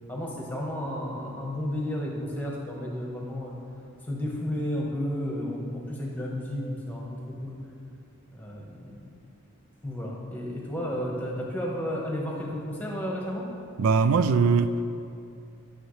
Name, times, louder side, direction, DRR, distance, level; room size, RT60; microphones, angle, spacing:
voice 1, 0.1-3.5 4.1-7.6 8.3-9.0 9.8-13.5, equal, 10° left, -2 dB, 1.2 m, -32 dB
voice 2, 13.8-14.9, right 4 dB, 80° right, 11 dB, 0.3 m, -21 dB
12.0 x 6.7 x 3.2 m, 2.5 s
head